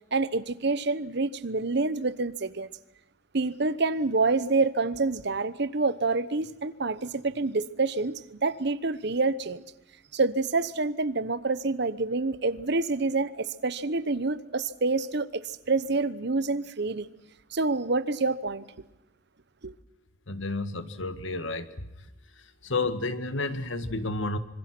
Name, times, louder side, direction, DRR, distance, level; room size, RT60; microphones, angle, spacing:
voice 1, 0.1-2.7 3.3-9.6 10.1-17.1 17.5-18.6 19.6-19.7, right 3 dB, 55° right, 1.0 m, -27 dB
voice 2, 20.3-21.7 22.4-24.4, left 2 dB, 65° left, 1.8 m, -31 dB
26.5 x 24.5 x 6.1 m
head